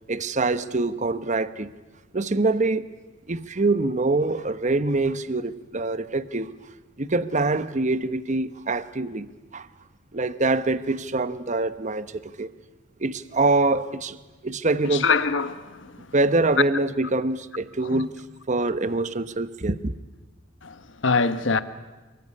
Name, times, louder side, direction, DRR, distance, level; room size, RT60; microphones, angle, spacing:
voice 1, 0.1-1.7 2.1-2.9 3.3-6.5 7.0-9.7 10.1-12.5 13.0-15.1 16.1-18.2 18.5-19.9, right 2 dB, 40° right, 1.0 m, -25 dB
voice 2, 14.9-16.1 17.8-18.0 20.6-21.6, left 4 dB, 70° left, 1.3 m, -24 dB
28.5 x 21.0 x 9.8 m
head